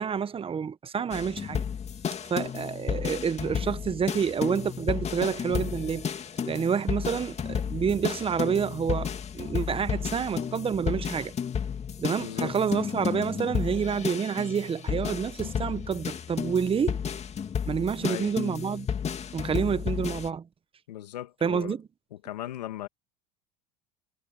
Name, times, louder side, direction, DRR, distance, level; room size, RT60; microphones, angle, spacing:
voice 1, 0.0-1.6 2.3-6.1 6.5-11.3 12.0-17.0 17.7-18.9 19.3-20.5 21.4-21.8, right 6 dB, 25° right, 1.3 m, -28 dB
sound 1, 1.1-20.3, left 7 dB, 30° left, 2.4 m, -32 dB
voice 2, 12.2-12.5 18.0-18.3 20.9-21.8 22.2-22.9, left 13 dB, 85° left, 1.9 m, -37 dB
hypercardioid pair, 85°, 20 cm